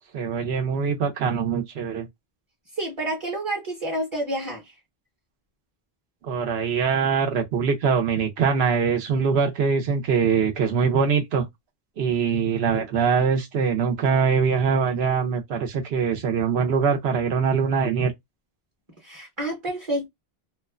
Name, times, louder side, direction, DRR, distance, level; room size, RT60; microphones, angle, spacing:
voice 1, 0.1-2.1 6.2-11.5 12.0-18.1, right 6 dB, 85° right, 1.0 m, -23 dB
voice 2, 2.8-4.6 19.0-20.1, right 1 dB, 30° right, 0.8 m, -29 dB
3.0 x 2.1 x 2.4 m
omnidirectional pair, 1.0 m